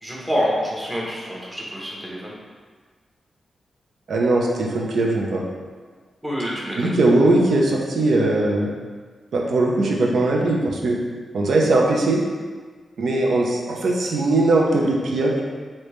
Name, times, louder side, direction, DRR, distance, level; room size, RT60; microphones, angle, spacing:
voice 1, 0.0-2.3 6.2-6.9, equal, 15° right, -5 dB, 1.0 m, -27 dB
voice 2, 4.1-5.4 6.8-8.7 9.3-11.0 11.3-12.2 13.0-15.4, right 2 dB, 75° right, -1 dB, 0.5 m, -20 dB
3.4 x 2.7 x 3.1 m, 1.5 s
cardioid pair, 80°, 0 cm